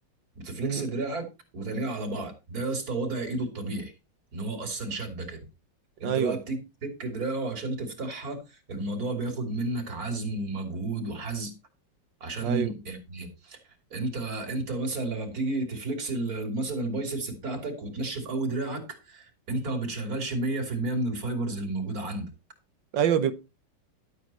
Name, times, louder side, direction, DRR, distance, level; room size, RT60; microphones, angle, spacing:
voice 1, 0.3-1.2 1.5-3.9 4.3-5.4 6.0-11.5 12.2-13.6 13.9-22.3, right 2 dB, 55° right, 3.4 m, -32 dB
voice 2, 6.0-6.4 12.4-12.7 22.9-23.3, right 9 dB, 90° right, 1.8 m, -25 dB
12.0 x 7.5 x 4.3 m
omnidirectional pair, 1.9 m